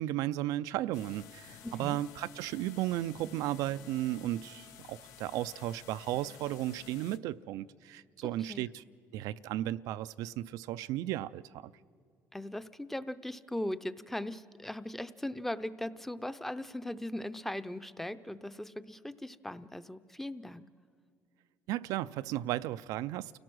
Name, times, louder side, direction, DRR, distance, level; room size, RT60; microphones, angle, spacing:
voice 1, 0.0-8.8 9.1-11.7 21.7-23.3, right 14 dB, 80° right, 0.4 m, -35 dB
sound 1, 0.9-7.2, left 10 dB, 85° left, 0.8 m, -53 dB
voice 2, 1.6-2.0 8.2-8.7 12.3-20.7, left 1 dB, 5° left, 0.6 m, -39 dB
29.5 x 17.0 x 6.2 m
cardioid pair, 115°, 6 cm